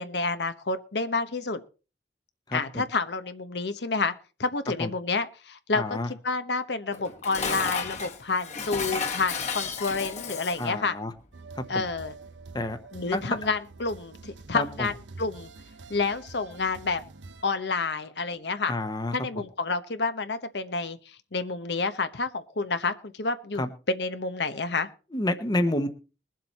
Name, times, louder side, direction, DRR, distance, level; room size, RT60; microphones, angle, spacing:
voice 1, 0.0-1.6 2.5-4.1 4.4-11.0 11.7-12.1 12.9-15.5 15.9-17.0 17.4-18.7 19.1-24.9, left 3 dB, 65° left, 10 dB, 1.0 m, -29 dB
voice 2, 2.5-2.8 4.8-4.9 5.7-6.1 10.6-11.1 11.6-11.8 12.5-12.8 13.1-13.4 14.5-14.9 18.7-19.2 23.6-23.7 25.1-25.9, left 1 dB, 25° left, 9 dB, 1.0 m, -29 dB
Dishes pots and pans, 6.9-10.7, left 5 dB, 40° left, 1.6 m, -33 dB
sound 1, 11.3-17.4, right 3 dB, 90° right, 0.8 m, -46 dB
21.5 x 7.6 x 4.2 m, 0.34 s
head